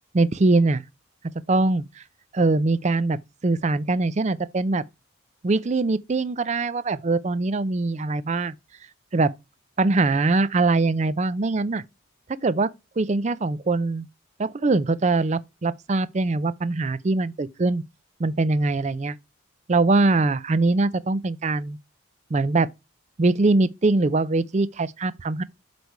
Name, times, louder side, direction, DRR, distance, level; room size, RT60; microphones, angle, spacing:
voice 1, 0.1-0.8 1.5-1.9 2.3-4.8 5.4-8.6 9.1-9.3 9.8-11.8 12.4-14.1 14.4-17.8 18.2-19.2 19.7-21.8 22.3-22.7 23.2-25.4, right 3 dB, 35° right, 0.4 m, -22 dB
8.1 x 3.3 x 4.6 m
head